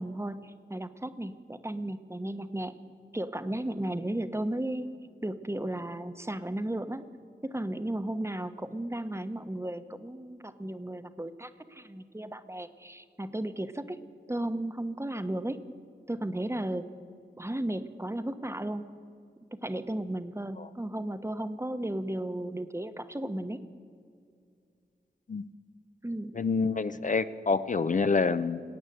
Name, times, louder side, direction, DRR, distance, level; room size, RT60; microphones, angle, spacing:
voice 1, 0.0-2.8 3.1-4.9 5.2-7.1 7.4-14.0 14.3-15.6 16.1-16.9 17.4-18.9 19.5-23.6 26.0-26.4, right 1 dB, 15° right, 11 dB, 0.9 m, -34 dB
voice 2, 26.3-28.6, left 4 dB, 45° left, 12 dB, 0.5 m, -27 dB
20.0 x 8.8 x 7.9 m, 2.3 s
cardioid pair, 50°, 18 cm